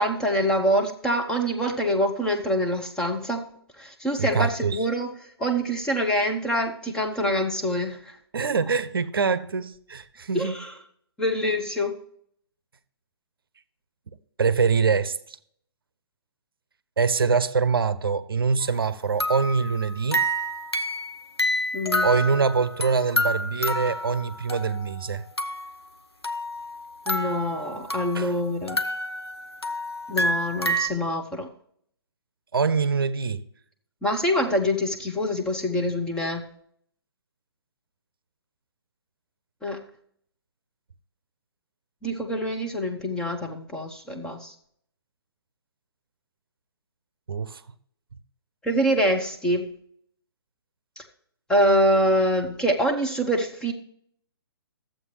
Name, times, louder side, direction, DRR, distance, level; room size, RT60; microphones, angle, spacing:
voice 1, 0.0-3.4 3.8-5.1 5.4-8.2 10.3-10.7 11.2-11.9 21.7-22.1 27.1-28.8 30.1-31.5 34.0-36.4 39.6-39.8 42.0-44.5 48.6-49.7 51.0-51.1 51.5-53.7, equal, 5° left, 0.8 m, -25 dB
voice 2, 4.2-4.8 8.3-10.6 14.4-15.4 17.0-20.2 22.0-25.2 28.1-28.3 32.5-33.4 47.3-47.6, right 5 dB, 65° right, 0.6 m, -24 dB
sound 1, 18.6-18.8 19.2-25.0 25.4-25.8 26.2-28.3 28.7-30.9, equal, 90° left, 0.9 m, -29 dB
12.5 x 7.7 x 3.1 m
figure-of-eight pair, 130°, 13 cm